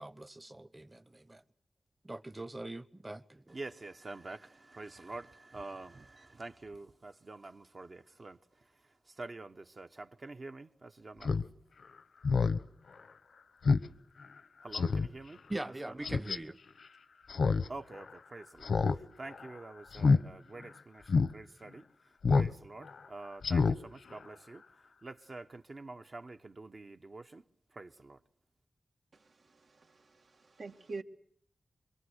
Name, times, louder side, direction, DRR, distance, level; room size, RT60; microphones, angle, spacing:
voice 1, 0.0-1.4 2.0-3.6 15.5-16.6, right 2 dB, 20° right, 1.1 m, -42 dB
voice 2, 3.5-8.4 9.1-11.4 14.6-15.4 15.9-16.1 17.7-21.8 22.3-24.6 25.0-27.4 27.7-28.2, right 3 dB, 45° right, 1.1 m, -47 dB
Speech synthesizer, 11.2-11.4 11.8-11.9 12.2-12.6 13.0-13.1 13.7-13.9 14.2-14.3 14.7-15.1 16.0-16.4 17.3-17.7 18.0-18.1 18.6-19.0 19.3-19.5 19.9-20.2 20.6-20.7 21.1-21.3 22.2-22.5 22.8-23.0 23.4-23.8 24.1-24.2, left 4 dB, 85° left, 1.0 m, -27 dB
voice 3, 29.5-31.0, right 3 dB, 75° right, 2.3 m, -45 dB
26.0 x 23.5 x 8.1 m
wide cardioid pair, 90°, 0 cm